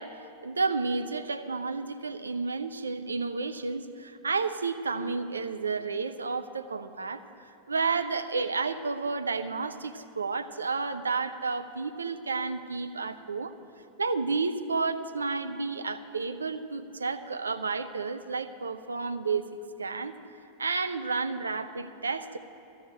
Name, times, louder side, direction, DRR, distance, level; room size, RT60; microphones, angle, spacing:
voice 1, 0.0-7.2 7.7-13.5 14.0-20.1 20.6-22.4, right 4 dB, 75° right, 9 dB, 0.5 m, -31 dB
14.0 x 6.4 x 9.0 m, 2.7 s
figure-of-eight pair, 90°, 0 cm